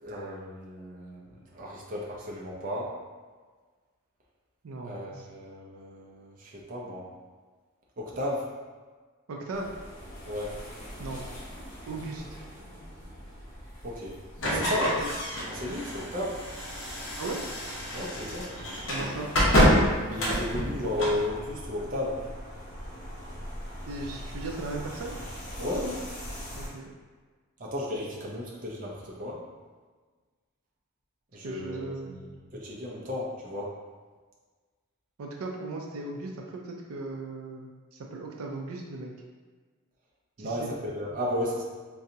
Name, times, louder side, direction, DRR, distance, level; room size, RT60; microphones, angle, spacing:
voice 1, 0.0-2.9 4.8-7.1 8.0-8.4 10.3-10.5 13.8-14.2 14.4-15.2 15.5-16.4 17.9-18.5 20.1-22.2 25.6-26.0 27.6-29.4 31.3-33.7 40.4-41.6, left 1 dB, 40° right, -4 dB, 0.6 m, -34 dB
voice 2, 4.6-5.3 9.3-9.7 11.0-11.2 11.9-12.2 14.4-14.8 17.2-17.4 18.8-19.3 23.9-25.1 26.6-26.9 31.4-32.2 35.2-39.1 40.4-40.7, right 3 dB, 90° right, 0 dB, 0.4 m, -37 dB
sound 1, 9.5-26.7, equal, 35° left, 0.9 m, -43 dB
sound 2, 14.4-21.2, equal, 65° left, 0.9 m, -27 dB
3.9 x 2.3 x 2.7 m, 1.4 s
head